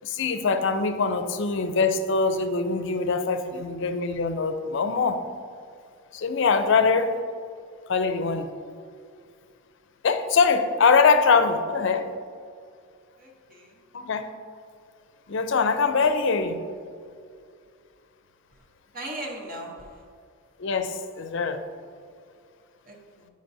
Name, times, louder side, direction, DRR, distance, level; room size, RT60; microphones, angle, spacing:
voice 1, 0.0-5.2 6.1-7.1 7.9-8.5 10.0-12.1 13.9-14.3 15.3-16.6 20.6-21.6, left 4 dB, 55° left, 9 dB, 0.5 m, -23 dB
voice 2, 13.2-13.8 18.9-20.0 22.9-23.3, right 1 dB, 40° right, 0 dB, 0.9 m, -38 dB
10.0 x 5.2 x 2.7 m, 2.2 s
head